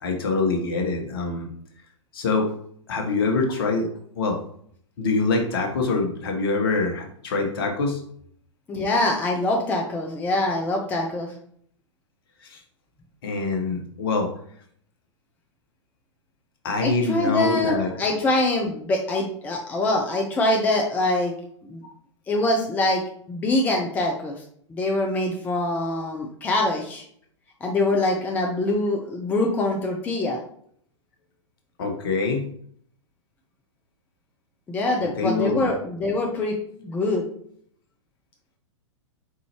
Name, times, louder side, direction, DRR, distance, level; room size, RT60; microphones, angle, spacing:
voice 1, 0.0-1.5 2.1-2.5 2.9-3.9 4.1-4.4 5.0-8.0 12.4-12.6 13.2-14.3 16.6-17.9 31.8-32.5 35.0-35.8, left 3 dB, 45° left, 3 dB, 1.0 m, -24 dB
voice 2, 8.7-11.3 16.8-21.3 21.6-21.8 22.3-23.0 23.3-24.4 24.7-27.0 27.6-30.4 34.7-37.2, left 2 dB, 10° left, 1 dB, 0.5 m, -24 dB
4.8 x 3.9 x 2.9 m, 0.63 s
figure-of-eight pair, 105°, 16 cm